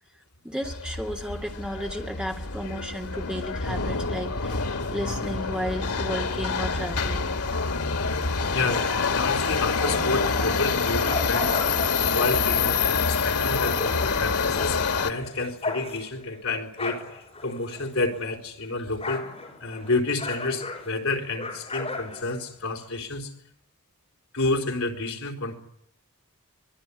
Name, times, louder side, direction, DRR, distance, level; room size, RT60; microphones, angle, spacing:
voice 1, 0.4-7.3, equal, 5° right, 1 dB, 2.4 m, -33 dB
Subway metro underground, 0.6-15.1, left 4 dB, 90° left, 2.0 m, -26 dB
voice 2, 8.5-19.3 19.6-23.3 24.3-25.6, left 3 dB, 65° left, 2 dB, 4.0 m, -30 dB
sound 1, 8.5-10.3 10.7-18.3 18.6-22.9, left 3 dB, 25° left, 6.9 m, -36 dB
25.0 x 20.5 x 9.8 m, 0.77 s
head